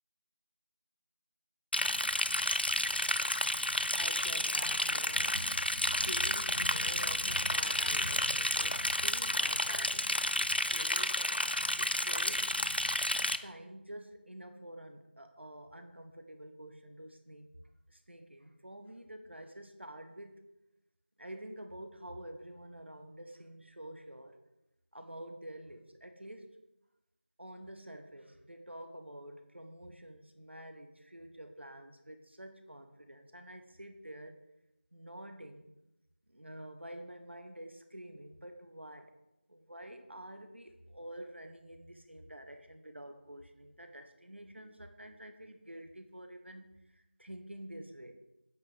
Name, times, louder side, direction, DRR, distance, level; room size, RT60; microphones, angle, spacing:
Liquid, 1.7-13.4, left 1 dB, 60° left, 0.4 m, -31 dB
voice 1, 3.9-5.5 5.9-12.5 13.4-17.5 17.9-20.4 21.2-24.4 24.9-26.6 27.4-34.4 34.9-35.7 36.3-39.2 39.5-46.7 46.9-48.1, right 1 dB, 80° right, 7 dB, 1.0 m, -48 dB
8.5 x 6.1 x 3.4 m, 0.92 s
figure-of-eight pair, 180°, 6 cm